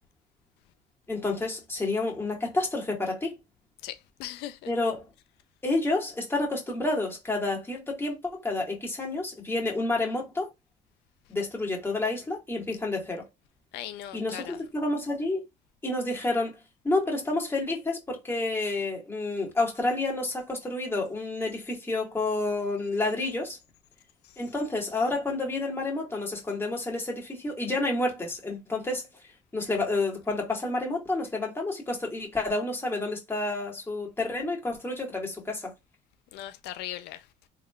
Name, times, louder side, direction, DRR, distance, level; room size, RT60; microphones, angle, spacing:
voice 1, 1.1-3.4 4.7-5.1 5.6-10.5 11.3-13.3 14.1-15.4 15.8-16.6 16.8-23.6 24.4-29.0 29.5-35.7, left 2 dB, 15° left, 1.7 m, -29 dB
voice 2, 3.8-4.6 13.7-14.6 36.3-37.2, left 13 dB, 85° left, 0.4 m, -38 dB
3.6 x 3.2 x 2.3 m
cardioid pair, 110°, 17 cm